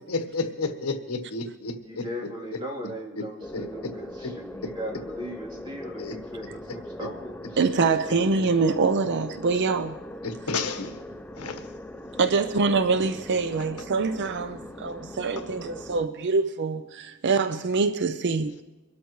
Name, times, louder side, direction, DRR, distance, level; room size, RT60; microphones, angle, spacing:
voice 1, 0.1-2.0 3.2-3.3 3.5-3.7 4.2-4.3 6.0-6.1 10.2-11.0 11.4-11.7 12.0-12.2 15.4-15.5, left 3 dB, 80° left, 1.3 m, -31 dB
voice 2, 1.8-7.6, equal, 20° right, 3.1 m, -38 dB
sound 1, 3.4-16.1, left 1 dB, 5° left, 0.3 m, -41 dB
voice 3, 7.6-10.0 12.2-18.6, right 4 dB, 50° right, 0.5 m, -25 dB
24.0 x 12.5 x 3.1 m
head